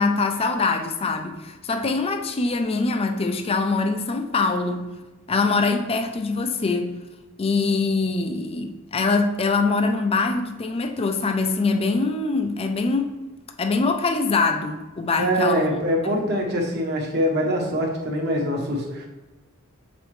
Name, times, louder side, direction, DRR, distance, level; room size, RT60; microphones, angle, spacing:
voice 1, 0.0-4.9 5.3-6.9 7.4-13.2 13.6-15.7 16.0-16.2, left 3 dB, 25° left, 6 dB, 0.4 m, -23 dB
voice 2, 15.2-19.1, equal, 50° right, 0 dB, 1.1 m, -24 dB
7.3 x 5.1 x 3.1 m, 1.1 s
head